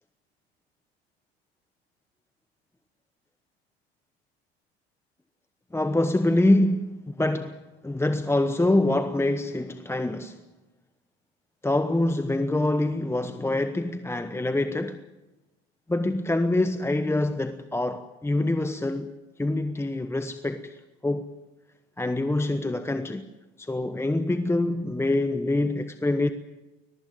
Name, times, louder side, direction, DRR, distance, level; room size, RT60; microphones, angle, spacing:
voice 1, 5.7-10.4 11.6-15.0 15.9-21.3 22.0-23.3 23.6-26.3, left 2 dB, 10° left, 1.1 m, -25 dB
22.0 x 21.0 x 7.5 m
hypercardioid pair, 75°, 31 cm